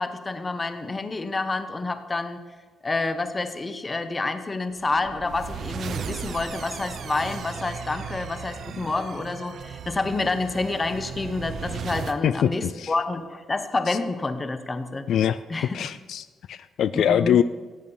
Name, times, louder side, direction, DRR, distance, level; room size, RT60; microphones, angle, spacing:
voice 1, 0.0-2.4 2.8-15.0 15.5-15.8 16.9-17.4, left 3 dB, 20° left, 10 dB, 1.1 m, -28 dB
sound 1, 4.8-12.2, right 7 dB, 55° right, 0.9 m, -36 dB
voice 2, 12.2-12.9 13.9-14.0 15.1-15.4 15.7-17.4, left 9 dB, 70° left, 14 dB, 0.4 m, -23 dB
16.5 x 8.7 x 7.2 m, 1.4 s
cardioid pair, 145°, 0 cm